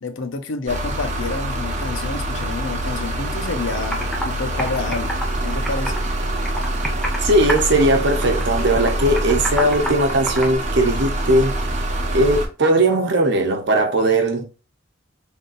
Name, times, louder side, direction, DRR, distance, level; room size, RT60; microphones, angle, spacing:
voice 1, 0.0-6.0, left 3 dB, 80° left, 0.7 m, -29 dB
sound 1, 0.7-12.5, right 1 dB, 40° right, 0.9 m, -25 dB
Computer keyboard, 3.6-3.7 3.9-4.2 4.6-6.1 6.4-7.2 7.5-7.9 8.2-10.5, equal, 5° left, 0.8 m, -28 dB
voice 2, 7.2-11.6 12.1-14.4, right 1 dB, 60° right, 0.9 m, -18 dB
4.0 x 3.5 x 2.6 m
head